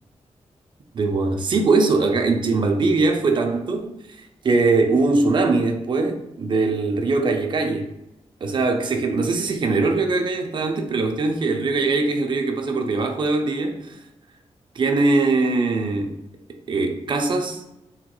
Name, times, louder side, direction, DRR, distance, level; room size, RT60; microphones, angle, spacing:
voice 1, 0.9-7.9 8.4-14.0 14.8-16.2 16.7-17.6, right 3 dB, 45° right, 4 dB, 0.4 m, -21 dB
3.5 x 2.9 x 2.2 m, 0.87 s
wide cardioid pair, 175°, 11 cm